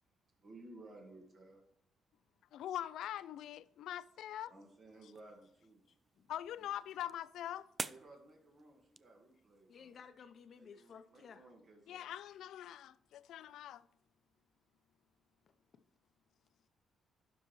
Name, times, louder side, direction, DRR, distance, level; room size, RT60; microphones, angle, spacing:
voice 1, 0.4-1.6 4.1-4.2 4.5-5.8 6.6-6.7 7.8-10.1 10.6-12.1, right 2 dB, 55° right, 1.8 m, -57 dB
voice 2, 2.5-4.5 6.3-7.7 11.9-13.8, left 11 dB, 80° left, 0.3 m, -43 dB
sound 1, 4.9-10.0, right 4 dB, 30° right, 0.3 m, -50 dB
voice 3, 9.7-11.5, left 6 dB, 55° left, 0.7 m, -55 dB
11.5 x 5.3 x 3.1 m
cardioid pair, 90°, 0 cm